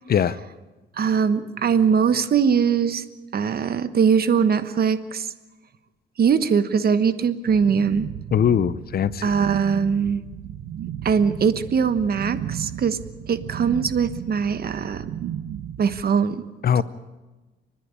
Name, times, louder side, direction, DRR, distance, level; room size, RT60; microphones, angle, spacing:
voice 1, 1.0-3.0 3.3-5.3 6.2-8.1 9.2-10.2 11.0-13.0 13.3-15.1 15.8-16.4 16.7-16.8, right 6 dB, 50° right, 12 dB, 1.2 m, -21 dB
sound 1, 7.5-16.0, right 10 dB, 80° right, 0.9 m, -34 dB
voice 2, 8.3-9.3 16.6-16.8, left 8 dB, 50° left, 17 dB, 0.7 m, -21 dB
29.0 x 10.5 x 9.8 m, 1.2 s
cardioid pair, 90°, 20 cm